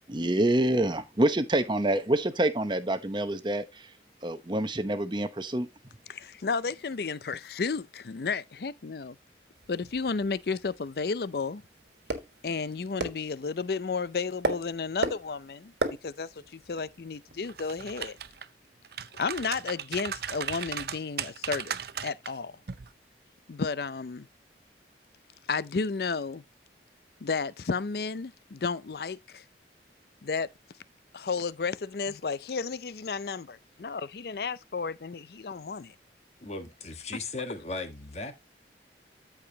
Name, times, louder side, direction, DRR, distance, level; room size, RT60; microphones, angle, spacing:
voice 1, 0.1-3.9 4.2-5.7, right 1 dB, 25° right, 0.8 m, -27 dB
voice 2, 6.1-9.2 9.7-11.6 12.4-15.7 16.0-18.2 19.2-21.8 22.0-22.5 23.5-24.3 25.5-26.4 27.2-29.4 30.2-30.5 31.1-35.9 37.1-37.2, left 4 dB, 60° left, 0.5 m, -32 dB
sound 1, 9.5-18.4, right 2 dB, 75° right, 1.5 m, -38 dB
sound 2, 17.5-18.4 18.8-22.3 22.7-22.9, right 8 dB, 60° right, 0.6 m, -36 dB
voice 3, 36.4-38.3, left 3 dB, 35° left, 1.4 m, -37 dB
13.5 x 4.9 x 2.8 m
head